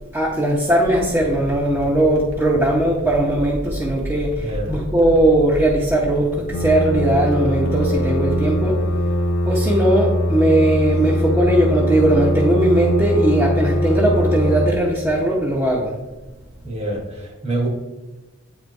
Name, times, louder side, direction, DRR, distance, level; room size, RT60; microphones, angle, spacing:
voice 1, 0.1-8.8 9.5-15.9, right 1 dB, 10° right, -5 dB, 0.7 m, -19 dB
sound 1, 0.8-8.6, equal, 75° right, 1.4 m, -32 dB
voice 2, 4.4-4.8 16.6-17.7, right 2 dB, 30° right, -1 dB, 1.2 m, -26 dB
sound 2, 6.5-14.7, equal, 80° left, 0.6 m, -21 dB
8.5 x 4.7 x 2.5 m, 1.2 s
head